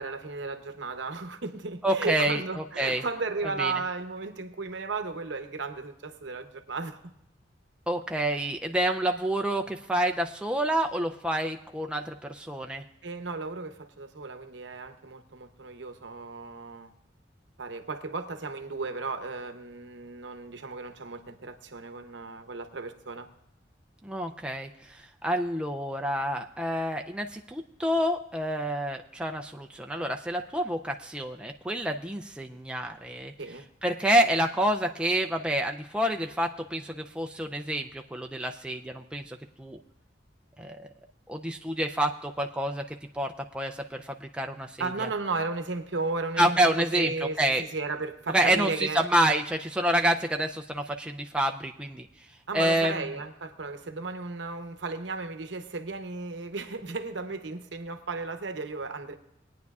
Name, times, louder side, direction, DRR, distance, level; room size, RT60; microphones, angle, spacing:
voice 1, 0.0-7.0 13.0-16.9 17.6-23.3 33.4-33.6 44.8-49.1 52.5-59.1, right 3 dB, 75° right, 0.8 m, -35 dB
voice 2, 1.8-2.4 2.8-3.0 3.6-3.7 7.9-12.8 24.0-33.3 33.8-39.8 40.6-40.9 41.3-45.1 46.4-47.6 48.3-52.1 52.5-53.1, right 1 dB, 5° right, 0.4 m, -28 dB
21.0 x 9.3 x 2.4 m
head